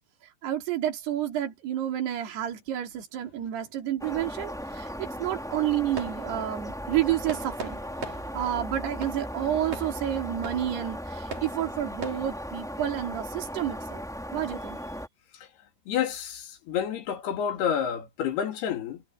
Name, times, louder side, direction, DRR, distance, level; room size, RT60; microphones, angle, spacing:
voice 1, 0.4-7.8 8.3-14.0 14.3-14.8, right 11 dB, 80° right, 4.9 m, -30 dB
sound 1, 2.3-12.3, right 4 dB, 55° right, 6.2 m, -44 dB
sound 2, 4.0-15.1, equal, ahead, 2.7 m, -37 dB
voice 2, 15.9-19.0, left 8 dB, 75° left, 4.4 m, -29 dB
omnidirectional pair, 4.6 m